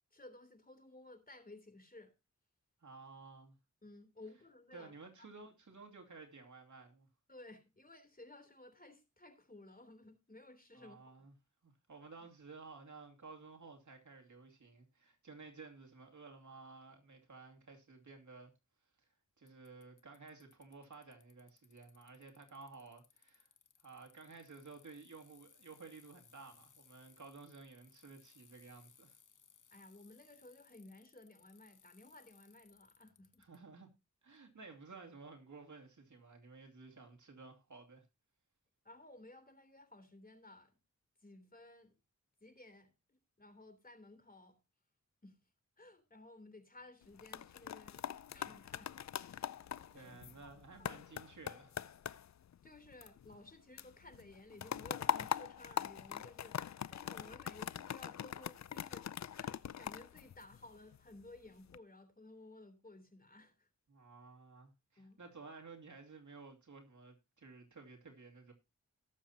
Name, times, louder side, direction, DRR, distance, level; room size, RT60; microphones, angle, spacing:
voice 1, 0.1-2.1 3.8-4.9 5.2-5.3 7.3-11.2 29.7-33.4 38.8-40.7 41.2-42.0 42.4-44.6 45.2-45.4 45.8-48.9 49.3-50.9 52.6-63.7 65.0-65.2, left 2 dB, 30° left, 3.2 m, -57 dB
voice 2, 2.8-3.6 4.7-7.1 10.7-11.3 11.6-18.5 19.0-19.1 19.4-23.5 23.8-29.2 33.4-33.9 34.2-38.0 49.9-51.8 63.9-68.5, right 4 dB, 70° right, 2.5 m, -54 dB
Bicycle, 19.5-33.6, left 7 dB, 75° left, 1.0 m, -67 dB
sound 1, 47.0-53.5 53.8-61.0 61.5-61.8, left 9 dB, 60° left, 0.5 m, -42 dB
18.5 x 7.2 x 2.8 m
wide cardioid pair, 60°, 31 cm